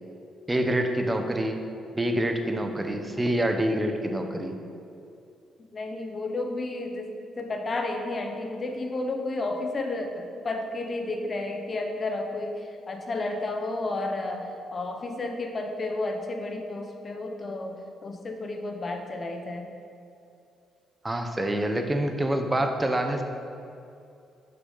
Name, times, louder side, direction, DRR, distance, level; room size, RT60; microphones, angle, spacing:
voice 1, 0.5-1.6 1.9-4.5 21.0-23.2, right 1 dB, 15° right, 5 dB, 0.9 m, -26 dB
voice 2, 5.7-7.1 7.3-19.7, left 2 dB, 35° left, 4 dB, 1.0 m, -32 dB
6.8 x 6.0 x 5.5 m, 2.6 s
cardioid pair, 90°, 0 cm